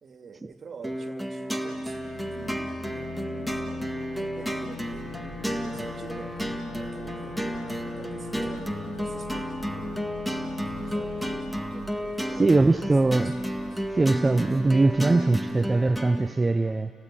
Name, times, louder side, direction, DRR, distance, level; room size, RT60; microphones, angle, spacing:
voice 1, 0.0-3.0 3.7-6.4 6.8-10.1 10.6-14.0, right 5 dB, 45° right, 2.1 m, -46 dB
sound 1, 0.8-16.3, equal, ahead, 1.7 m, -32 dB
sound 2, 1.6-13.1, left 5 dB, 90° left, 2.3 m, -42 dB
sound 3, 4.9-16.0, right 10 dB, 85° right, 1.0 m, -50 dB
voice 2, 12.4-13.4 14.0-16.9, right 2 dB, 20° right, 0.6 m, -21 dB
30.0 x 18.0 x 8.9 m
cardioid pair, 90°, 0 cm